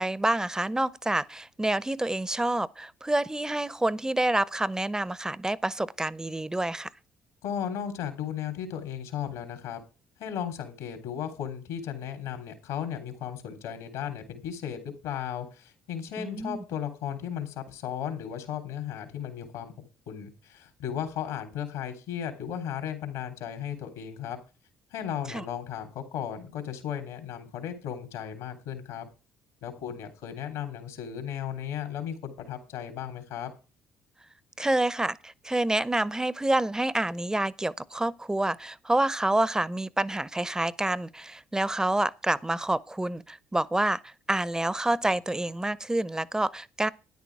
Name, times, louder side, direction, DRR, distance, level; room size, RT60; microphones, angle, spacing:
voice 1, 0.0-6.9 16.2-16.6 25.3-25.4 34.6-46.9, right 1 dB, 10° right, 0.8 m, -28 dB
voice 2, 7.4-9.8 10.2-24.4 24.9-29.1 29.6-33.5, left 9 dB, 75° left, 3.2 m, -35 dB
13.0 x 10.0 x 4.7 m
hypercardioid pair, 55°, 5 cm